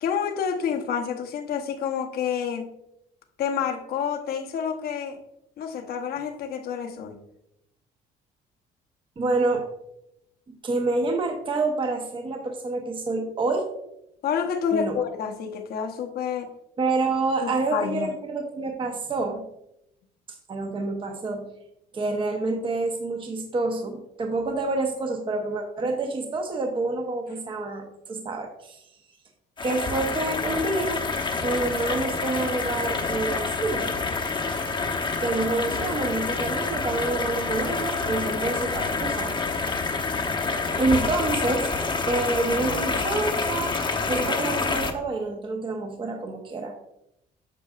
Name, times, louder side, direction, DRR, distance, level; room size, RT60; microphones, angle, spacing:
voice 1, 0.0-2.7 3.4-5.2 5.6-7.2 14.2-16.5 17.4-18.1, left 7 dB, 65° left, 4 dB, 1.0 m, -28 dB
voice 2, 9.2-9.7 10.6-13.7 14.7-15.0 16.8-19.4 20.5-21.5 21.9-28.8 29.6-31.0 31.4-33.9 35.2-39.7 40.7-41.7 42.1-43.8 44.1-46.8, right 3 dB, 30° right, 3 dB, 0.9 m, -27 dB
sound 1, 29.6-44.9, left 4 dB, 30° left, 0.9 m, -27 dB
8.7 x 6.2 x 2.4 m, 0.83 s
cardioid pair, 110°, 17 cm